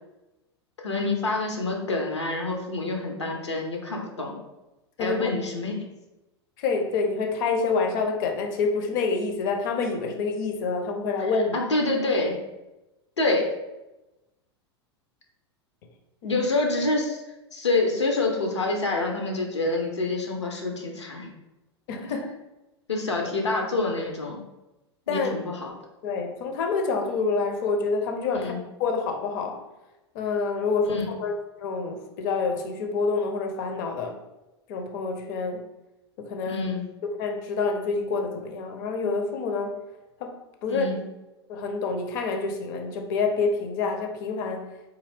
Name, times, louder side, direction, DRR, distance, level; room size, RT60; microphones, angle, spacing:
voice 1, 0.8-4.4 5.0-5.7 11.5-12.4 13.2-13.5 16.2-17.2 17.5-21.3 22.9-24.4 25.1-25.7 28.3-28.6 30.9-31.1 36.5-36.9 40.6-41.0, left 2 dB, 80° left, 0.8 m, -27 dB
voice 2, 5.0-5.3 6.6-11.6 16.2-16.4 21.9-22.3 25.1-25.4 26.0-29.6 30.1-31.3 31.6-34.2 34.7-35.6 36.2-36.6 37.2-39.8 40.2-41.0 41.5-44.8, left 4 dB, 45° left, 0.6 m, -27 dB
3.9 x 2.7 x 3.3 m
figure-of-eight pair, 90°, 14 cm